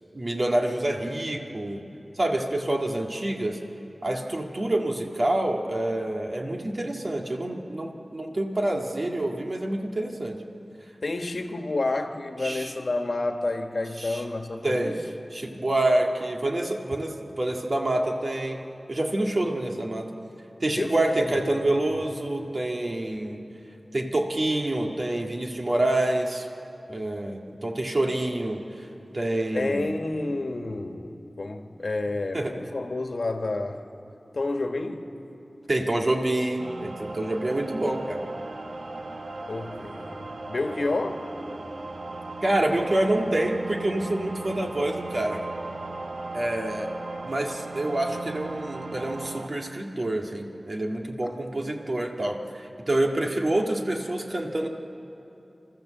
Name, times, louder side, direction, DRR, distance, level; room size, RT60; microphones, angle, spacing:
voice 1, 0.1-1.8 2.2-3.6 4.0-10.4 12.4-12.7 14.0-14.2 14.6-14.9 15.3-18.6 18.9-20.1 20.6-23.4 23.9-26.5 26.9-28.6 29.1-30.0 32.3-32.5 35.7-38.2 42.4-45.4 46.3-46.9 47.2-54.7, right 1 dB, 50° right, 1 dB, 2.0 m, -27 dB
voice 2, 11.0-15.0 20.8-21.5 29.5-33.9 34.3-35.2 39.5-41.3 51.2-51.3, left 2 dB, 65° left, 6 dB, 1.4 m, -30 dB
sound 1, 36.6-49.5, right 2 dB, 80° right, 1.1 m, -37 dB
28.0 x 13.5 x 7.8 m, 2.9 s
wide cardioid pair, 75°, 0 cm